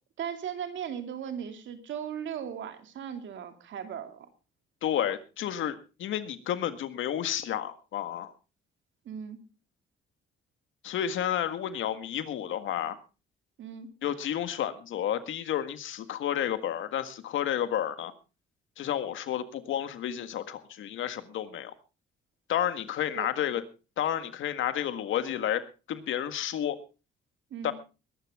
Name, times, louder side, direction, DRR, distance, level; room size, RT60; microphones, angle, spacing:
voice 1, 0.2-4.3 9.0-9.4 13.6-13.9 23.1-23.3 27.5-27.7, right 8 dB, 70° right, 7 dB, 2.7 m, -37 dB
voice 2, 4.8-8.3 10.8-13.0 14.0-18.1 18.8-21.7 22.5-23.6 24.0-26.8 27.6-27.7, left 10 dB, 75° left, 11 dB, 1.7 m, -31 dB
21.0 x 12.0 x 3.6 m, 0.32 s
cardioid pair, 90°, 20 cm